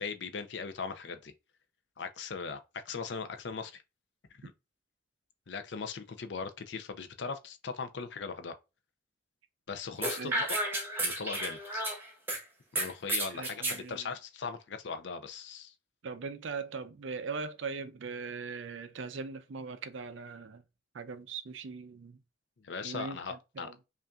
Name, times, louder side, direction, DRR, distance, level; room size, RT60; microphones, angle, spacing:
voice 1, 0.0-1.3 2.0-3.8 4.4-4.5 5.5-8.5 9.7-10.6 11.0-11.8 12.7-15.7 22.6-23.7, left 5 dB, 65° left, 0.5 m, -39 dB
sound 1, 10.0-12.4 12.8-13.8, right 1 dB, 10° right, 0.9 m, -32 dB
voice 2, 13.3-14.1 16.0-20.6 20.9-22.2 22.8-23.8, right 4 dB, 80° right, 0.5 m, -40 dB
5.3 x 2.5 x 2.3 m
head